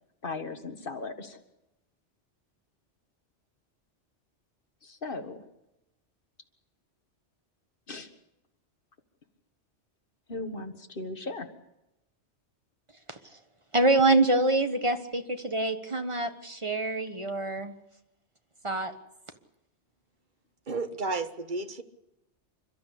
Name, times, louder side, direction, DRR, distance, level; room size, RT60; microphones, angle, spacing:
voice 1, 0.2-1.4 4.8-5.4 7.9-8.1 10.3-11.5, left 3 dB, 50° left, 1.9 m, -37 dB
voice 2, 13.7-17.7 18.6-18.9, right 2 dB, 25° right, 1.4 m, -25 dB
voice 3, 20.7-21.8, right 3 dB, 45° right, 1.3 m, -32 dB
28.5 x 12.5 x 8.4 m
omnidirectional pair, 1.2 m